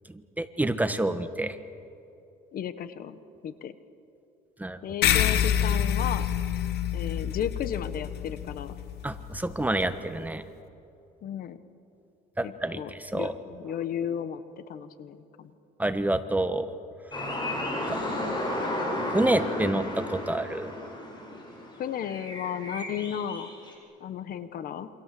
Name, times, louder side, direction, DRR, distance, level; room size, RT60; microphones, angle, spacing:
voice 1, 0.1-1.6 4.6-4.8 9.0-10.4 12.4-13.3 15.8-16.7 17.9-18.0 19.0-20.7, right 1 dB, 10° right, 10 dB, 1.3 m, -28 dB
voice 2, 2.5-3.2 3.4-3.7 4.8-6.3 6.9-8.7 11.2-11.6 12.4-15.5 21.8-23.5 24.0-24.9, left 9 dB, 60° left, 12 dB, 1.4 m, -34 dB
sound 1, 5.0-9.9, left 10 dB, 75° left, 1.7 m, -27 dB
sound 2, 17.1-23.7, left 1 dB, 25° left, 7.9 m, -33 dB
28.5 x 25.5 x 7.8 m, 2.7 s
cardioid pair, 110°, 17 cm